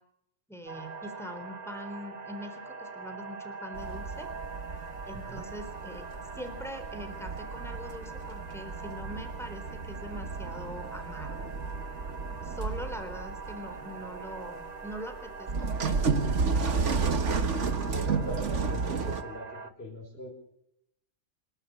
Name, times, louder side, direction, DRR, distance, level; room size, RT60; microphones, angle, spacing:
voice 1, 0.5-4.3 5.1-6.0 6.4-11.4 12.4-16.0, equal, ahead, 6 dB, 3.8 m, -42 dB
sound 1, 0.7-19.7, right 4 dB, 35° right, 1.4 m, -43 dB
sound 2, 3.7-19.2, right 4 dB, 80° right, 1.8 m, -32 dB
voice 2, 5.1-5.5 17.3-20.3, left 1 dB, 55° left, -3 dB, 6.3 m, -42 dB
28.0 x 12.5 x 8.6 m, 0.76 s
omnidirectional pair, 1.2 m